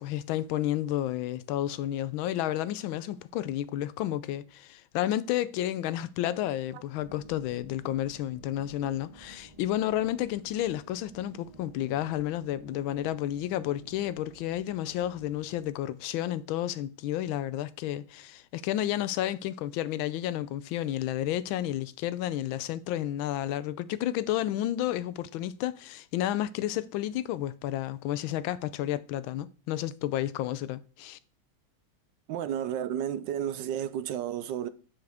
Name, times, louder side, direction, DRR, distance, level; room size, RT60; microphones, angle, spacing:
voice 1, 0.0-31.2, left 13 dB, 85° left, 1.4 m, -31 dB
sound 1, 7.0-15.7, right 2 dB, 40° right, 0.5 m, -52 dB
voice 2, 32.3-34.7, right 10 dB, 70° right, 1.1 m, -32 dB
7.5 x 7.1 x 3.5 m
omnidirectional pair, 2.2 m